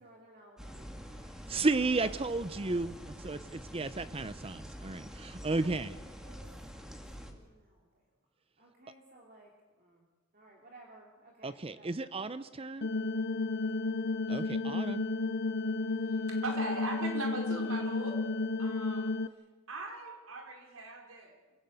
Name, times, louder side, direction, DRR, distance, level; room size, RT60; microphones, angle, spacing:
voice 1, 0.0-1.3 1.6-2.8 3.3-3.6 5.4-6.4 6.9-8.0 8.6-9.5 9.8-10.0 10.3-11.9, right 2 dB, 45° right, -1 dB, 3.0 m, -57 dB
sound 1, 0.6-7.3, equal, 5° right, 2.1 m, -47 dB
voice 2, 1.5-5.9 11.4-12.9 14.3-15.0, right 3 dB, 30° right, 14 dB, 0.6 m, -33 dB
sound 2, 12.8-19.3, left 3 dB, 55° left, 0.7 m, -32 dB
voice 3, 16.3-18.2 18.6-19.1 19.7-21.3, right 2 dB, 85° right, 2 dB, 4.8 m, -39 dB
26.0 x 17.5 x 8.1 m, 1.2 s
head